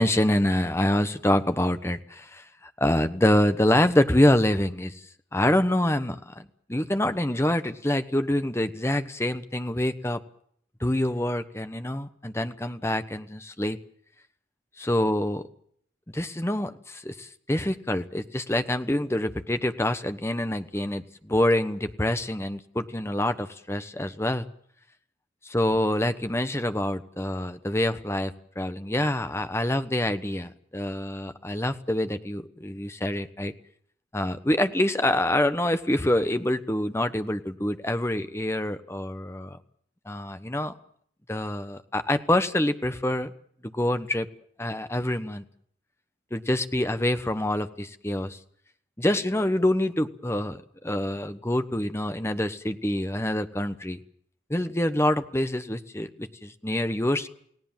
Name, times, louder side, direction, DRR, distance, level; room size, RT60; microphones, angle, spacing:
voice 1, 0.0-2.4 2.8-5.0 5.3-10.2 10.8-13.8 14.8-15.4 16.1-24.5 25.4-33.5 34.1-39.6 40.1-40.7 41.3-43.3 43.6-44.3 44.6-45.4 46.3-48.4 49.0-54.0 54.5-57.3, left 1 dB, 15° left, 10 dB, 1.1 m, -26 dB
29.5 x 17.5 x 7.4 m, 0.65 s
head